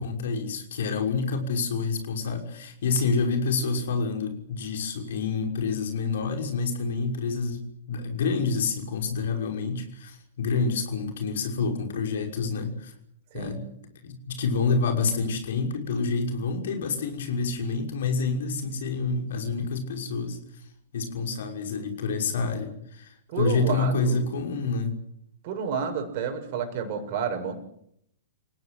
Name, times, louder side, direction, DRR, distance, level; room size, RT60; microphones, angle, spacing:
voice 1, 0.0-12.9 13.3-13.6 14.0-20.4 20.9-24.9, left 4 dB, 60° left, 4 dB, 6.0 m, -28 dB
voice 2, 23.3-24.2 25.4-27.5, right 6 dB, 45° right, 6 dB, 6.8 m, -30 dB
29.0 x 18.5 x 8.2 m, 0.72 s
figure-of-eight pair, 105°, 0 cm